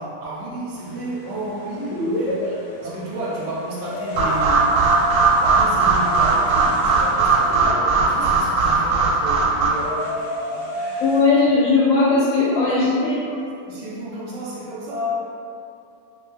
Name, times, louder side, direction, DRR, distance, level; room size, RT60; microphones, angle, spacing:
voice 1, 0.0-11.2 12.6-15.2, right 1 dB, 65° right, -6 dB, 0.8 m, -32 dB
sound 1, 0.8-11.2, left 1 dB, 50° left, 0.6 m, -33 dB
voice 2, 1.9-2.5 11.0-13.2, left 3 dB, 70° left, -8 dB, 0.9 m, -18 dB
sound 2, 4.2-9.7, right 4 dB, 85° right, 1.1 m, -18 dB
2.4 x 2.3 x 3.2 m, 2.6 s
omnidirectional pair, 1.6 m